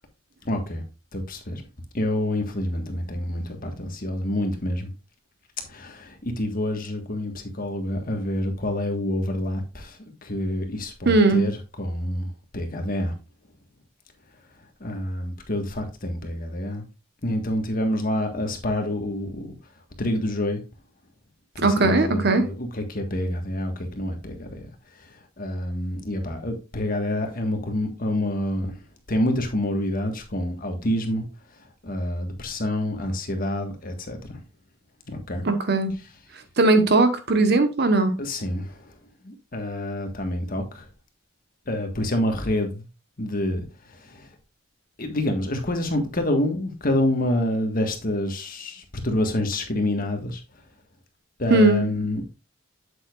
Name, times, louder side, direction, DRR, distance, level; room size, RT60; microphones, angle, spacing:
voice 1, 0.4-0.8 1.1-1.6 1.9-4.9 5.7-13.1 14.8-16.9 17.2-19.6 20.0-20.6 21.6-24.7 25.4-28.8 29.1-31.3 31.8-34.4 35.1-35.4 38.2-38.9 39.2-40.9 41.7-42.9 43.2-43.6 43.9-44.3 45.0-50.4 51.4-52.2, left 1 dB, 45° left, 1.6 m, -27 dB
voice 2, 11.1-11.5 21.6-22.4 35.4-35.9 36.6-38.1 51.5-51.8, right 2 dB, 55° right, 1.2 m, -18 dB
8.3 x 7.6 x 2.5 m
head